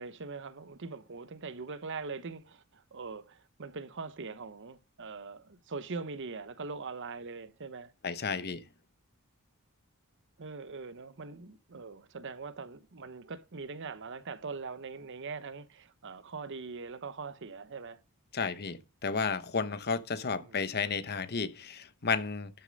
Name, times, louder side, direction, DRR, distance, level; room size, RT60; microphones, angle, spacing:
voice 1, 0.0-7.9 8.3-8.6 10.4-18.0 20.4-20.6, right 4 dB, 55° right, 0.8 m, -42 dB
voice 2, 8.0-8.6 18.3-22.5, left 5 dB, 50° left, 1.0 m, -32 dB
12.5 x 6.7 x 5.2 m
head